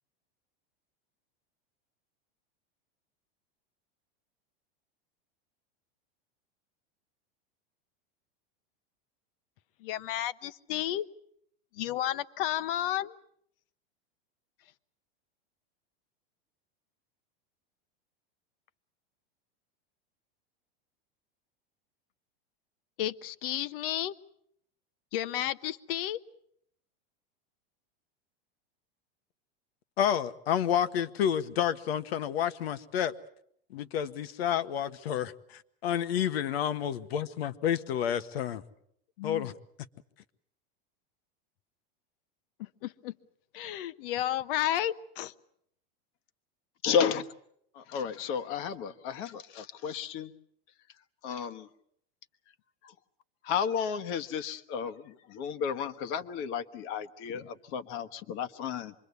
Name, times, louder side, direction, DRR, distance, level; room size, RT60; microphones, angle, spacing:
voice 1, 9.8-11.1 11.7-13.1 23.0-24.1 25.1-26.2 39.2-39.5 42.6-43.1 43.5-45.3, left 12 dB, 65° left, 15 dB, 1.0 m, -32 dB
voice 2, 30.0-33.1 33.7-38.6 39.2-39.5, left 9 dB, 80° left, 12 dB, 1.4 m, -30 dB
voice 3, 46.8-47.3 47.7-50.3 51.2-51.7 52.8-52.9 53.4-58.9, left 7 dB, 45° left, 11 dB, 1.3 m, -32 dB
26.5 x 22.5 x 8.2 m, 0.72 s
supercardioid pair, 150°, 30 cm